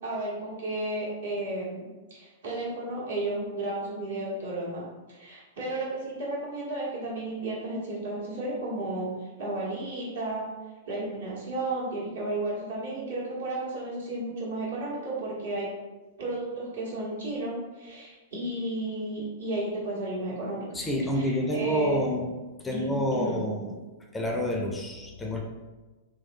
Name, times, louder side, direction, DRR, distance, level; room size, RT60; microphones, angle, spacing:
voice 1, 0.0-4.8 5.1-9.1 9.4-10.5 10.8-15.7 16.2-20.6 21.1-22.1 22.7-23.4, right 2 dB, 65° right, -6 dB, 1.4 m, -33 dB
voice 2, 20.7-22.3 22.6-23.8 24.1-25.4, equal, 10° left, 0 dB, 0.4 m, -28 dB
3.4 x 3.1 x 2.6 m, 1.2 s
figure-of-eight pair, 100°, 0 cm